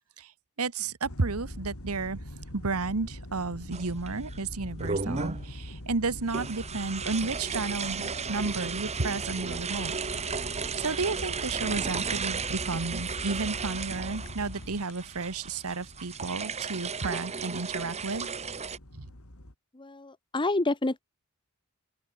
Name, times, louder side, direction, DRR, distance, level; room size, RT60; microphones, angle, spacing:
voice 1, 0.6-2.2 2.5-10.0 10.6-18.3 18.9-19.1, right 3 dB, 70° right, 1.3 m, -32 dB
sound 1, 1.0-19.5, left 1 dB, 70° left, 3.9 m, -43 dB
sound 2, 3.7-4.4 4.8-5.5 6.3-18.8, right 5 dB, 30° right, 1.5 m, -34 dB
voice 2, 19.7-21.0, left 2 dB, 20° left, 1.0 m, -28 dB
open air
head